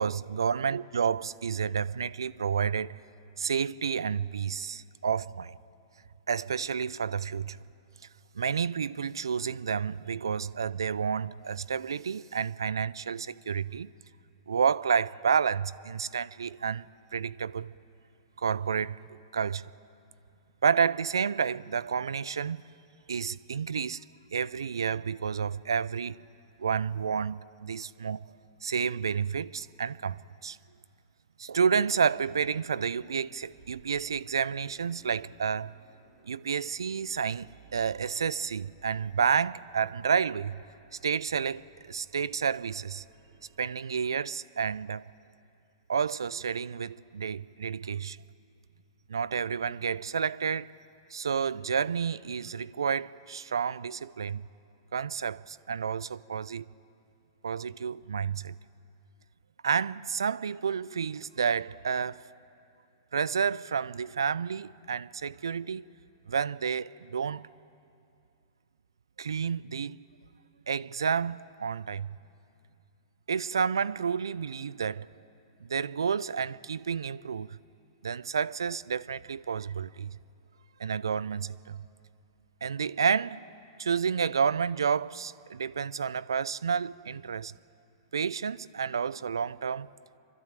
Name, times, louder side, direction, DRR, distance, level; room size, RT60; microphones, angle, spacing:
voice 1, 0.0-3.0 3.4-5.6 6.3-7.6 8.4-13.9 14.5-16.8 17.1-17.7 18.4-19.0 19.3-19.7 20.6-22.6 23.1-24.0 24.3-26.2 26.6-28.3 28.6-30.6 31.4-35.7 36.3-37.5 37.7-40.6 41.0-43.0 43.6-45.0 45.9-48.2 49.1-50.7 51.1-54.5 54.9-56.7 57.4-58.5 59.6-62.2 63.1-65.9 66.3-67.5 69.2-70.0 70.7-72.2 73.3-75.1 75.6-77.5 78.0-80.2 80.8-81.8 82.6-83.4 83.8-87.5 88.1-89.9, right 6 dB, 80° right, 0.5 m, -30 dB
sound 1, 30.2-30.3 30.7-31.1 31.4-31.5 31.8-31.9 32.2-43.7, right 6 dB, 40° right, 4.4 m, -60 dB
28.5 x 12.0 x 9.0 m
hypercardioid pair, 110°, 2 cm